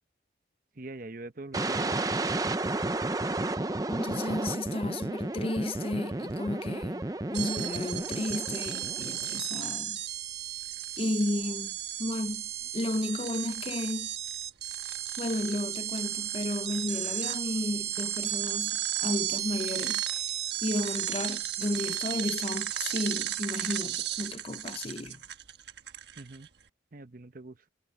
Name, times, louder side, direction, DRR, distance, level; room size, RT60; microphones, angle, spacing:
voice 1, 0.8-2.0 26.2-26.5 26.9-27.7, right 2 dB, 45° right, 0.9 m, -43 dB
sound 1, 1.5-9.4, right 2 dB, 20° right, 0.6 m, -32 dB
voice 2, 3.9-7.0 7.3-10.0 11.0-12.4 12.7-14.1 15.2-25.2, left 1 dB, 30° left, 0.5 m, -33 dB
sound 2, 7.3-26.5, right 12 dB, 65° right, 1.3 m, -34 dB
head